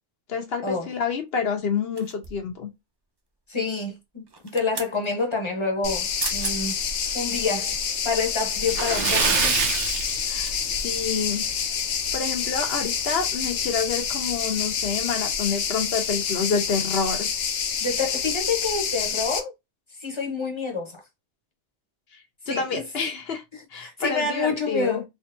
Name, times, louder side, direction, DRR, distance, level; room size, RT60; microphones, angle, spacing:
voice 1, 0.3-2.7 10.3-11.4 12.1-17.3 22.1-23.4 23.7-25.0, left 5 dB, 60° left, 1.2 m, -28 dB
sound 1, 2.0-2.5 4.3-4.9 5.9-6.0 6.2-6.6 7.1-7.3, right 3 dB, 30° right, 0.5 m, -34 dB
voice 2, 3.5-4.2 4.5-6.8 7.1-7.7 8.0-9.5 17.8-19.5 20.0-21.0 22.5-22.8 23.5-25.0, left 4 dB, 25° left, 1.1 m, -28 dB
sound 2, 5.8-19.4, left 7 dB, 90° left, 1.1 m, -28 dB
Splash splatter, 8.6-11.0 11.3-11.5 11.9-12.0 13.5-13.6 13.9-14.0 14.6-14.9, right 5 dB, 80° right, 1.1 m, -25 dB
3.7 x 3.1 x 2.6 m
omnidirectional pair, 1.2 m